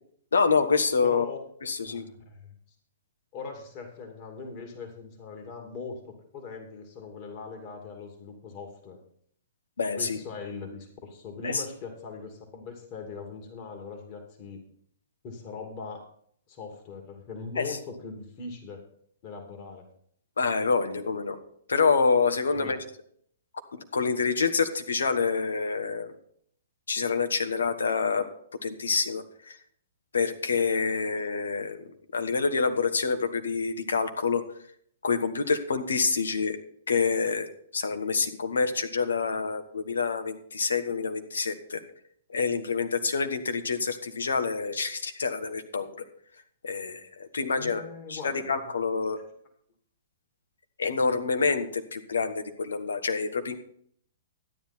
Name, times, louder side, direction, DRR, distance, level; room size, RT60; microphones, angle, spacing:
voice 1, 0.3-1.2 1.6-2.0 9.8-10.2 11.4-11.6 17.6-17.8 20.4-21.4 21.7-22.8 23.7-26.1 26.9-28.3 28.6-29.6 30.1-34.4 35.0-36.6 36.9-41.8 42.3-45.9 46.6-49.2 50.8-53.6, left 5 dB, 80° left, 8 dB, 1.3 m, -27 dB
voice 2, 1.0-1.4 1.9-2.5 3.3-9.0 10.0-14.6 15.2-16.0 16.5-18.8 19.2-19.9 22.5-22.8 47.6-48.6, left 4 dB, 40° left, 2 dB, 2.6 m, -41 dB
12.5 x 10.0 x 4.4 m, 0.63 s
hypercardioid pair, 120°, 0 cm